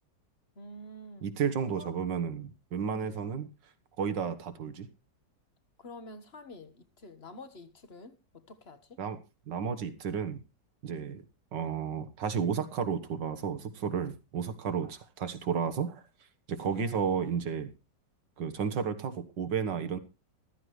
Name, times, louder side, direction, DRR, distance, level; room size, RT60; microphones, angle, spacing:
voice 1, 0.5-1.3 1.7-1.9 3.0-3.3 5.8-9.0 16.8-17.0, left 1 dB, 35° left, 1.5 m, -48 dB
voice 2, 1.2-3.5 4.0-4.9 9.0-9.2 9.5-10.4 10.8-11.2 11.5-16.0 16.5-17.7 18.4-20.0, right 6 dB, 75° right, 2.0 m, -32 dB
14.5 x 13.0 x 3.2 m
omnidirectional pair, 1.9 m